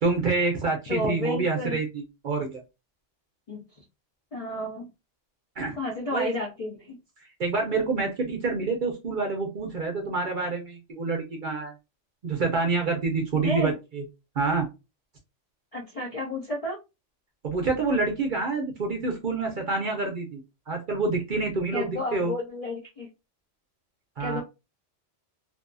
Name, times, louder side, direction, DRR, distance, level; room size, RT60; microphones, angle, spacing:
voice 1, 0.0-2.6 5.6-5.8 6.1-6.3 7.4-11.7 12.2-14.0 14.4-14.7 17.4-20.4 20.7-22.3 24.2-24.4, right 3 dB, 50° right, 2 dB, 0.6 m, -27 dB
voice 2, 0.9-1.8 3.5-3.6 4.3-4.9 5.7-7.0 13.4-13.7 15.7-16.8 21.7-23.1 24.2-24.4, left 1 dB, 50° left, -1 dB, 0.4 m, -31 dB
2.6 x 2.5 x 2.2 m, 0.26 s
omnidirectional pair, 1.3 m